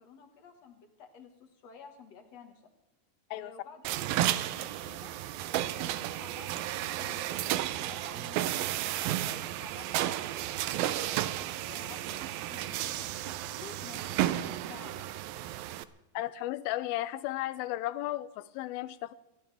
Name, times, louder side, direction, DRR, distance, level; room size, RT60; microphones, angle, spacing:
voice 1, 0.0-2.6 3.4-3.9 4.4-5.1 5.5-10.3 10.7-15.3, left 5 dB, 50° left, 4 dB, 2.4 m, -52 dB
sound 1, 3.8-15.8, right 13 dB, 80° right, 2.4 m, -33 dB
voice 2, 16.1-19.1, left 15 dB, 80° left, 15 dB, 2.4 m, -34 dB
23.5 x 16.0 x 3.5 m, 0.97 s
omnidirectional pair, 4.4 m